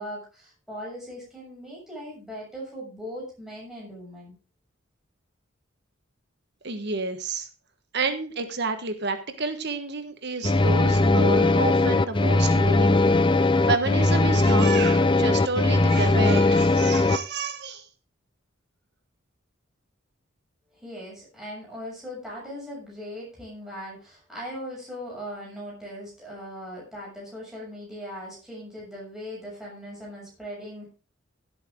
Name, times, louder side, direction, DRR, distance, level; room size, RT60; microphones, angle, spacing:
voice 1, 0.0-4.3 20.7-30.9, equal, ahead, -5 dB, 6.8 m, -39 dB
voice 2, 6.6-7.5 7.9-13.2 13.7-17.9, right 3 dB, 55° right, 8 dB, 1.4 m, -30 dB
sound 1, 10.4-17.2, left 2 dB, 25° left, 0.6 m, -19 dB
16.0 x 8.7 x 3.7 m, 0.34 s
head